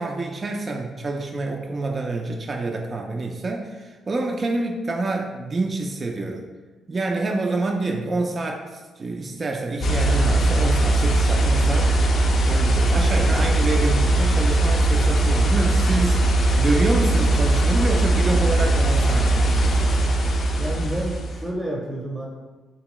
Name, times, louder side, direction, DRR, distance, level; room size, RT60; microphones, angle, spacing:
voice 1, 0.0-6.4 6.9-12.0 12.4-19.8, right 2 dB, 35° right, 1 dB, 0.3 m, -27 dB
sound 1, 9.8-21.5, right 2 dB, 50° left, 0.4 m, -19 dB
voice 2, 20.5-22.3, right 1 dB, 10° right, -3 dB, 0.7 m, -29 dB
3.5 x 2.8 x 3.0 m, 1.3 s
cardioid pair, 90°, 0 cm